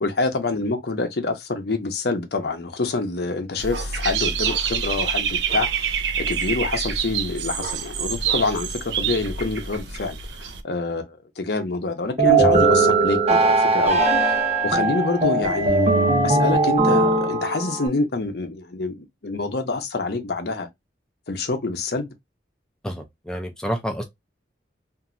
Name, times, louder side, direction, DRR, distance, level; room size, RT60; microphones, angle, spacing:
voice 1, 0.0-6.0 6.3-14.4 14.6-20.7 21.3-22.1, left 3 dB, 60° left, 0.7 m, -26 dB
Dog / Bird, 3.6-10.6, right 7 dB, 75° right, 0.5 m, -26 dB
sound 1, 12.2-17.9, right 3 dB, 35° right, 0.8 m, -19 dB
voice 2, 22.8-24.0, equal, 5° left, 0.5 m, -29 dB
2.9 x 2.6 x 2.5 m
head